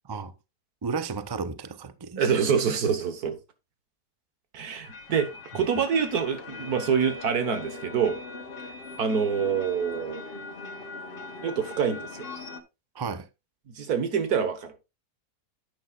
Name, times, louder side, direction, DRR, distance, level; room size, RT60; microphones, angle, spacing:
voice 1, 0.8-2.3 12.9-13.3, right 5 dB, 40° right, 0.3 m, -33 dB
voice 2, 2.2-3.4 4.5-5.3 5.5-8.2 9.0-10.2 11.4-12.3 13.8-14.7, right 6 dB, 80° right, 1.8 m, -26 dB
sound 1, 4.8-12.6, left 3 dB, 40° left, 1.2 m, -40 dB
10.0 x 8.8 x 2.4 m
omnidirectional pair, 1.6 m